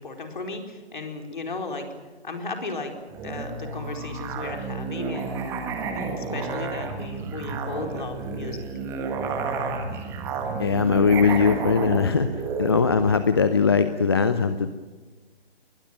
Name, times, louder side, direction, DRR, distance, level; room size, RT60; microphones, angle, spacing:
voice 1, 0.0-1.9 2.2-2.9 3.2-5.6 6.0-8.7, left 3 dB, 50° left, 4 dB, 4.4 m, -35 dB
Musical instrument, 3.1-13.3, right 4 dB, 10° right, 1.4 m, -31 dB
voice 2, 10.6-12.3 12.6-14.7, left 5 dB, 25° left, 11 dB, 0.7 m, -20 dB
22.0 x 20.0 x 9.2 m, 1.3 s
figure-of-eight pair, 145°, 31 cm